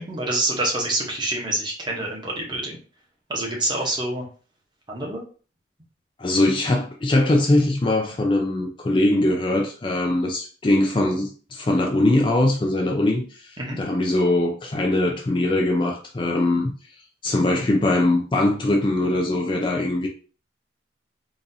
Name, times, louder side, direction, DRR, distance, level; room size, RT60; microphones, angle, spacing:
voice 1, 0.0-2.8 3.3-4.2 4.9-5.2 13.6-13.8, right 2 dB, 25° right, 0.9 m, -26 dB
voice 2, 6.2-13.5 13.8-16.7 17.2-20.1, left 1 dB, 25° left, 0.4 m, -21 dB
4.0 x 2.5 x 2.6 m
head